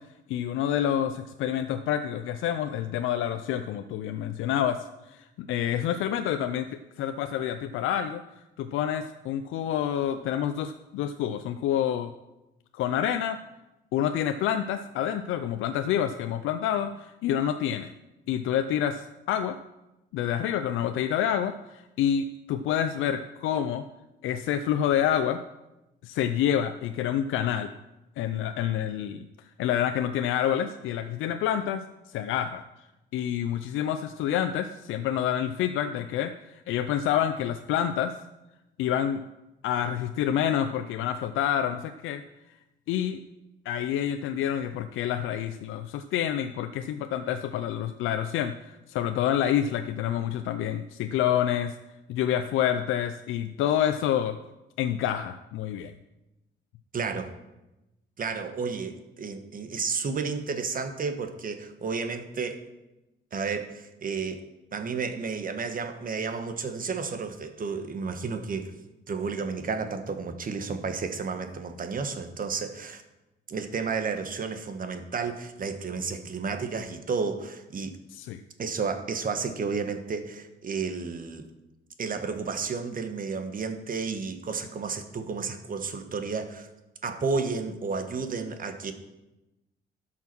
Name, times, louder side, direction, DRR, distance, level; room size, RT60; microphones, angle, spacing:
voice 1, 0.3-6.7 7.0-8.2 8.6-12.1 12.7-13.4 13.9-17.9 18.3-19.6 20.1-23.8 24.2-25.4 26.0-27.7 28.2-29.3 29.6-31.8 32.1-32.6 33.1-36.3 36.7-38.1 38.8-39.2 39.6-42.2 42.9-43.2 43.7-51.7 52.1-54.4 54.8-55.9 78.1-78.4, left 10 dB, 85° left, 9 dB, 0.5 m, -28 dB
voice 2, 56.9-57.3 58.2-62.6 63.3-64.4 64.7-68.7 69.1-73.0 73.5-78.0 78.6-81.5 82.0-86.7 87.0-88.9, right 5 dB, 45° right, 8 dB, 1.3 m, -32 dB
12.0 x 5.8 x 6.0 m, 0.99 s
cardioid pair, 90°, 20 cm